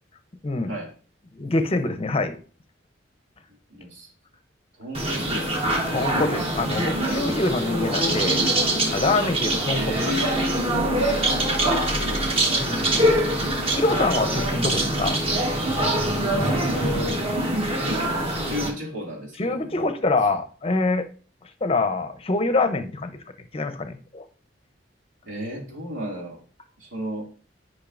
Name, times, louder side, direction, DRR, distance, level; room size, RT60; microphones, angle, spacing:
voice 1, 1.3-2.3 5.9-8.5 8.9-10.4 12.5-13.0 13.7-15.2 19.4-21.1 21.6-23.2 23.5-24.2, left 2 dB, 30° left, 9 dB, 0.6 m, -25 dB
voice 2, 3.7-4.1 4.8-5.7 9.2-9.4 9.7-10.6 11.6-12.8 16.2-17.2 17.6-19.9 25.2-26.4 26.8-27.3, equal, 90° right, -2 dB, 2.5 m, -34 dB
sound 1, 4.9-18.7, right 1 dB, 30° right, 1.2 m, -24 dB
10.0 x 5.2 x 2.5 m, 0.40 s
head